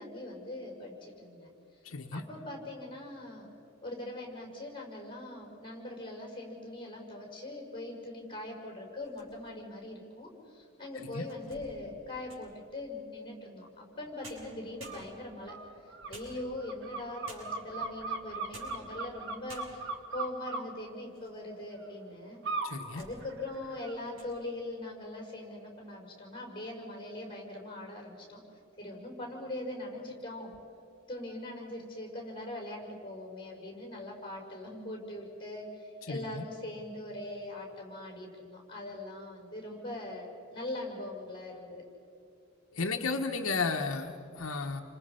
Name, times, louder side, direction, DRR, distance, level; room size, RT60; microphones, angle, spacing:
voice 1, 0.0-1.5 2.1-3.5 3.8-15.6 16.1-19.8 20.1-22.4 22.9-28.4 28.8-30.5 31.1-41.8, left 1 dB, 25° left, -1 dB, 5.8 m, -41 dB
voice 2, 1.8-2.2 11.1-11.3 22.6-23.0 36.0-36.2 42.7-44.8, left 4 dB, 75° left, 4 dB, 1.1 m, -33 dB
sound 1, 8.9-9.7 10.3-10.4 10.9-12.6 13.9-14.0 14.2-15.4 16.1-16.8 17.2-17.7 18.3-18.9 19.1-19.2 19.5-20.0 20.6-21.4 21.7-21.8 22.5-23.2 23.5-23.8 24.1-24.3, right 2 dB, 80° right, 6.9 m, -52 dB
sound 2, 14.8-15.0 15.5-20.6 22.4-22.8 23.2-24.0, right 3 dB, 60° right, 2.0 m, -38 dB
29.0 x 25.5 x 5.7 m, 2.6 s
head